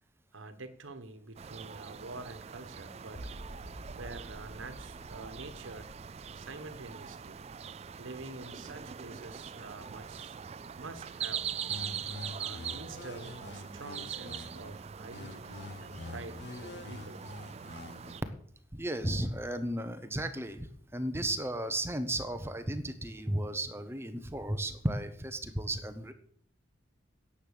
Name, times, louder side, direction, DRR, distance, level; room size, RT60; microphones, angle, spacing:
voice 1, 0.3-3.3 3.9-5.9 6.3-7.4 8.0-10.4 10.7-11.5 12.4-17.3, right 3 dB, 75° right, 10 dB, 1.4 m, -47 dB
sound 1, 1.4-18.2, right 7 dB, 30° right, 0.3 m, -42 dB
sound 2, 3.2-9.2, right 1 dB, 35° left, 1.4 m, -50 dB
sound 3, 11.7-14.7 15.1-18.1, left 3 dB, 55° left, 0.6 m, -46 dB
voice 2, 18.7-26.1, right 1 dB, 10° right, 9 dB, 0.8 m, -34 dB
10.5 x 7.7 x 6.7 m, 0.63 s
head